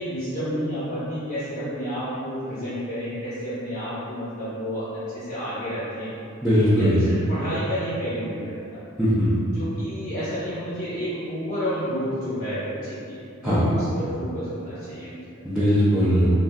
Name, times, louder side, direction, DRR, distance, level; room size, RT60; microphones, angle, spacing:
voice 1, 0.0-6.1 6.6-8.8 9.5-15.2, equal, 40° left, -13 dB, 0.7 m, -30 dB
voice 2, 6.4-7.1 9.0-9.3 13.4-13.6 15.4-16.3, equal, 5° right, -13 dB, 0.4 m, -19 dB
3.3 x 2.5 x 2.2 m, 2.6 s
head